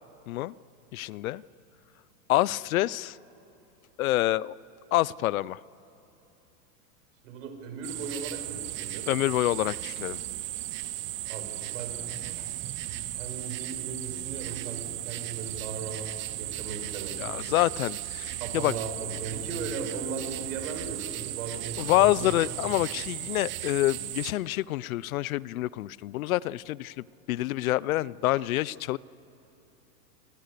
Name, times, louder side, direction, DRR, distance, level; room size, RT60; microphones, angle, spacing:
voice 1, 0.9-1.4 2.3-3.2 4.0-4.5 4.9-5.6 9.1-10.2 17.2-18.7 21.8-26.9 27.3-29.0, left 16 dB, 70° left, 23 dB, 0.6 m, -27 dB
voice 2, 7.2-9.1 11.3-12.7 13.1-17.6 18.4-22.4, right 4 dB, 60° right, 4 dB, 6.1 m, -38 dB
sound 1, 7.8-24.3, right 15 dB, 25° right, 0.9 m, -36 dB
29.0 x 26.0 x 6.8 m, 2.9 s
supercardioid pair, 150°, 44 cm